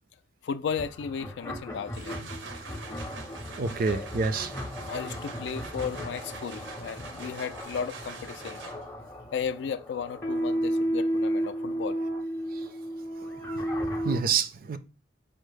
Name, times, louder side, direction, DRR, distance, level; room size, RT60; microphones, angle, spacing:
voice 1, 0.4-2.3 3.9-4.3 4.9-8.8 9.3-12.0, left 6 dB, 65° left, 0.3 m, -35 dB
sound 1, 0.7-14.2, equal, 15° left, 0.6 m, -34 dB
sound 2, 1.7-9.1, right 4 dB, 80° right, 0.7 m, -45 dB
voice 2, 3.6-4.5 14.0-14.8, right 5 dB, 50° right, 0.4 m, -27 dB
5.3 x 2.0 x 4.8 m
head